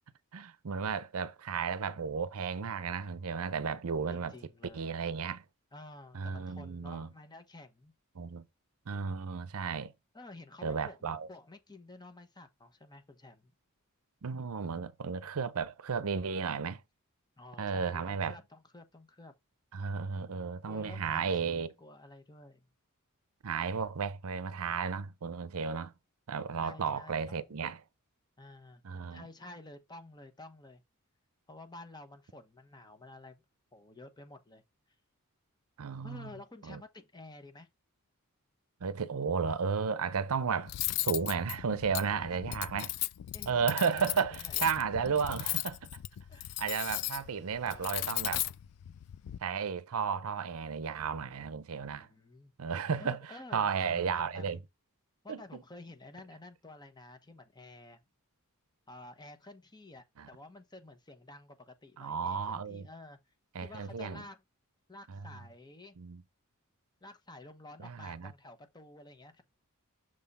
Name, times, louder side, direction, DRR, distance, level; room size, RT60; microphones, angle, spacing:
voice 1, 0.3-4.3 4.7-5.4 6.1-7.1 8.2-8.4 8.9-9.9 10.6-11.3 14.2-16.8 17.6-18.4 19.7-21.7 23.4-25.9 26.3-27.8 28.8-29.2 35.8-36.3 36.6-36.8 38.8-40.8 41.0-42.9 43.5-45.9 46.6-48.4 49.4-52.1 52.6-53.2 53.5-54.6 55.3-55.6 60.2-60.3 62.0-62.9 63.5-64.2 65.1-65.2 66.0-66.2 67.8-68.3, right 6 dB, 70° right, 0.6 m, -33 dB
voice 2, 4.1-5.0 5.7-7.9 10.1-13.5 17.4-19.3 20.6-22.7 26.6-27.5 28.4-28.8 29.1-30.8 31.5-33.4 33.7-34.6 36.0-37.7 42.2-43.0 43.3-44.7 45.1-45.2 46.3-46.4 46.9-47.1 47.6-48.4 51.8-52.5 53.0-54.6 55.2-58.0 58.9-63.2 63.6-64.4 64.9-66.0 67.0-69.4, left 2 dB, 20° left, 0.9 m, -51 dB
Cutlery silverware, 40.7-49.4, left 16 dB, 85° left, 0.4 m, -37 dB
6.4 x 3.6 x 4.1 m
head